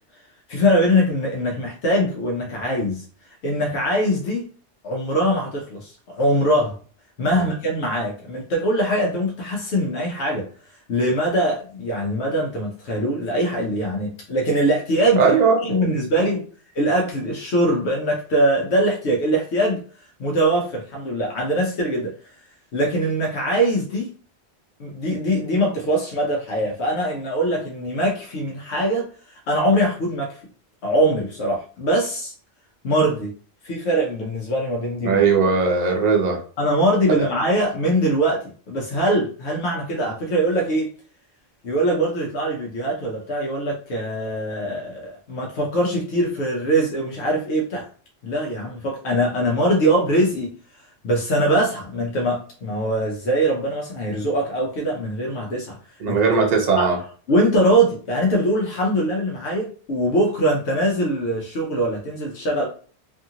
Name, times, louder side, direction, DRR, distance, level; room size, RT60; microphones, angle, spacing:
voice 1, 0.5-3.0 3.4-4.4 4.8-6.7 7.2-10.5 10.9-15.3 15.6-16.4 16.7-19.8 20.2-22.1 22.7-24.1 24.8-29.0 29.5-30.4 30.8-32.3 32.8-33.3 33.6-35.2 36.6-40.9 41.6-47.9 48.2-50.5 51.0-55.8 56.1-56.2 56.7-56.9 57.3-62.7, right 1 dB, 80° left, -1 dB, 1.0 m, -22 dB
voice 2, 15.2-15.7 16.2-16.3 35.0-36.4 37.2-37.3 56.0-57.0, right 5 dB, 45° right, 2 dB, 0.7 m, -19 dB
2.7 x 2.5 x 2.7 m, 0.41 s
omnidirectional pair, 1.1 m